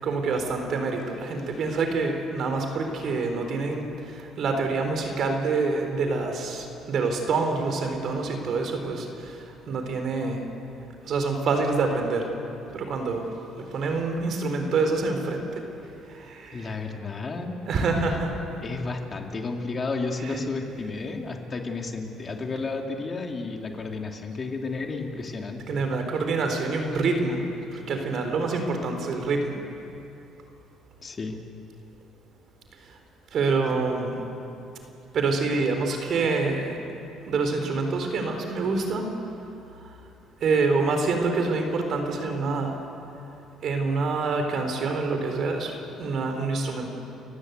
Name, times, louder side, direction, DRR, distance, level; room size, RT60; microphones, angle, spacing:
voice 1, 0.0-10.4 11.0-12.3 12.7-13.3 13.6-15.6 16.1-16.7 17.7-18.4 20.3-20.4 23.7-23.8 25.7-27.4 27.7-29.6 33.3-34.2 35.1-36.8 37.3-39.1 40.4-42.8 43.6-46.9, right 3 dB, 60° right, 5 dB, 3.9 m, -26 dB
voice 2, 16.5-17.6 18.6-25.8 31.0-31.4, left 3 dB, 35° left, 2 dB, 2.7 m, -32 dB
29.5 x 15.5 x 8.2 m, 2.8 s
cardioid pair, 90°, 0 cm